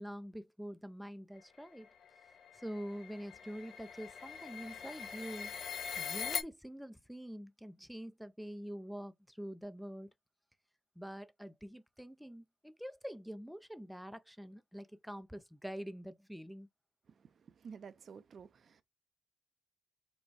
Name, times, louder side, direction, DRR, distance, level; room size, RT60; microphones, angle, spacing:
voice 1, 0.0-1.9 2.5-5.5 6.0-10.1 11.0-16.7, equal, ahead, 0.5 m, -46 dB
sound 1, 1.7-6.4, left 7 dB, 60° left, 0.7 m, -42 dB
voice 2, 17.1-18.8, right 6 dB, 50° right, 0.5 m, -52 dB
4.0 x 2.3 x 4.6 m
cardioid pair, 90°, 0 cm